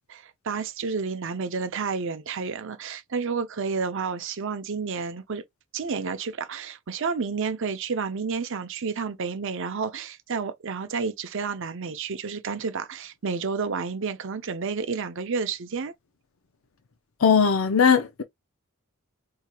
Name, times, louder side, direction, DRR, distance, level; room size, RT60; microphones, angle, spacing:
voice 1, 0.1-5.4 5.7-15.9, right 5 dB, 60° right, 0.6 m, -30 dB
voice 2, 17.2-18.2, left 6 dB, 65° left, 0.6 m, -19 dB
4.4 x 2.8 x 2.3 m
head